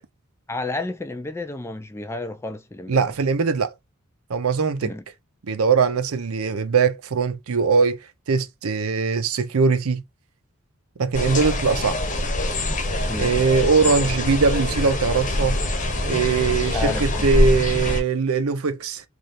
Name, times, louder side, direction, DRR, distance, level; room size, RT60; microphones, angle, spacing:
voice 1, 0.5-3.1 4.8-5.0 13.0-13.4 16.7-17.6, left 2 dB, 10° left, 0.4 m, -31 dB
voice 2, 2.9-3.7 4.3-4.9 5.4-8.0 8.3-10.0 11.0-12.0 13.2-15.6 16.1-19.0, right 5 dB, 80° right, 0.6 m, -21 dB
sound 1, 11.1-18.0, left 1 dB, 35° left, 0.8 m, -24 dB
3.1 x 2.4 x 4.1 m
head